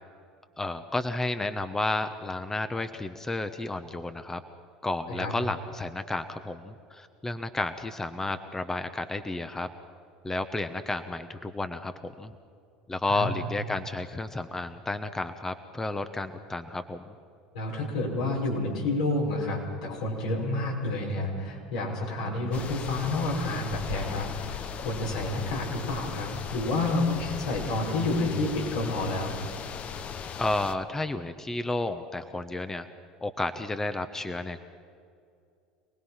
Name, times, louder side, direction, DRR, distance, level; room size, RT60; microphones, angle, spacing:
voice 1, 0.6-4.4 4.8-9.7 10.2-12.3 12.9-17.1 30.4-32.9 33.2-34.6, left 2 dB, 15° left, 9 dB, 1.1 m, -32 dB
voice 2, 17.5-29.4, left 2 dB, 80° left, -2 dB, 5.9 m, -29 dB
sound 1, 22.5-30.8, left 7 dB, 40° left, 1.1 m, -38 dB
26.0 x 19.5 x 5.8 m, 2.4 s
hypercardioid pair, 75°, 3 cm